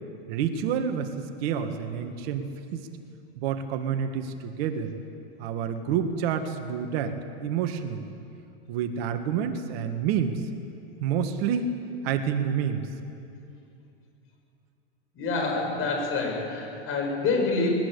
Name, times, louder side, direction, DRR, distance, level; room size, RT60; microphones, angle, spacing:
voice 1, 0.3-2.9 3.4-5.0 5.4-8.1 8.7-10.4 11.0-11.7 12.0-12.8, right 7 dB, 60° right, 7 dB, 1.9 m, -28 dB
voice 2, 15.1-17.7, left 3 dB, 40° left, 1 dB, 7.5 m, -27 dB
20.5 x 19.0 x 8.4 m, 2.6 s
hypercardioid pair, 120°, 35 cm